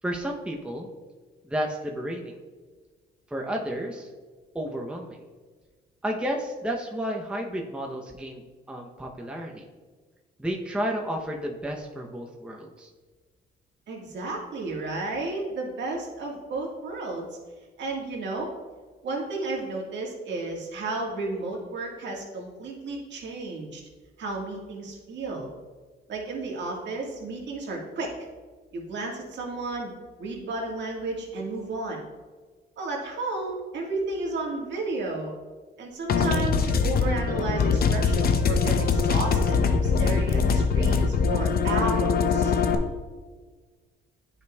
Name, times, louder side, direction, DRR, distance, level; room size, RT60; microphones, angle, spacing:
voice 1, 0.0-0.9 1.4-2.4 3.3-4.1 4.5-5.2 6.0-9.6 10.4-12.9, equal, 5° right, 0 dB, 0.7 m, -32 dB
voice 2, 13.9-17.3 17.8-18.5 19.0-23.8 24.2-25.5 26.1-28.2 28.7-32.0 32.8-35.3 35.8-42.6, right 3 dB, 65° right, -1 dB, 1.7 m, -32 dB
sound 1, 36.1-42.7, left 5 dB, 50° left, 0.6 m, -23 dB
9.4 x 5.1 x 2.3 m, 1.4 s
cardioid pair, 90°, 20 cm